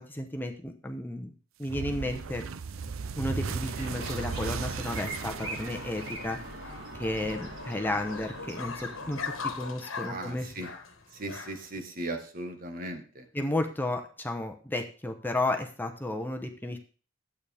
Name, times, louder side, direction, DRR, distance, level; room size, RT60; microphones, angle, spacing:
voice 1, 0.0-1.3 1.6-2.5 3.2-6.4 6.9-10.5 13.3-16.8, left 1 dB, 10° left, 4 dB, 1.0 m, -33 dB
sound 1, 1.7-6.8, right 5 dB, 85° right, 0.6 m, -36 dB
sound 2, 2.6-11.8, left 5 dB, 80° left, 1.4 m, -42 dB
sound 3, 3.7-9.8, right 2 dB, 70° right, 3.9 m, -42 dB
voice 2, 10.0-10.7 11.1-13.3, right 1 dB, 45° right, 6 dB, 1.6 m, -38 dB
12.0 x 8.5 x 3.6 m, 0.38 s
head